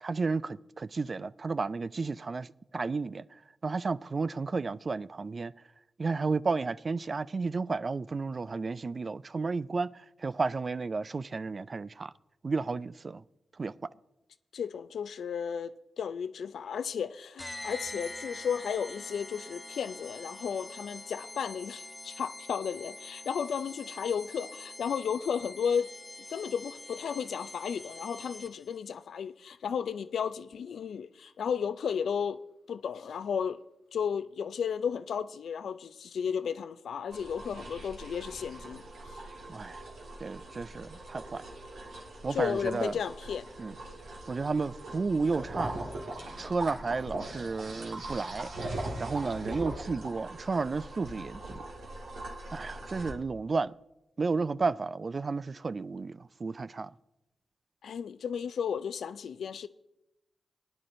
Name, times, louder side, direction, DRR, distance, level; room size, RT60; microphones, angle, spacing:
voice 1, 0.0-2.5 2.7-3.2 3.6-5.5 6.0-9.9 10.2-12.1 12.4-13.2 13.6-13.7 39.5-39.9 40.2-41.4 42.2-42.9 43.6-43.7 44.3-45.7 46.4-48.5 49.0-51.6 52.5-53.7 54.2-56.9, right 4 dB, 50° right, 0.3 m, -32 dB
voice 2, 14.5-25.9 26.3-32.4 32.7-33.6 33.9-39.2 42.3-43.5 57.8-59.7, left 7 dB, 80° left, 0.4 m, -34 dB
sound 1, 17.4-28.8, left 2 dB, 25° left, 0.7 m, -45 dB
sound 2, 37.1-53.1, right 2 dB, 85° right, 1.8 m, -41 dB
19.0 x 9.9 x 2.6 m
supercardioid pair, 40°, 0 cm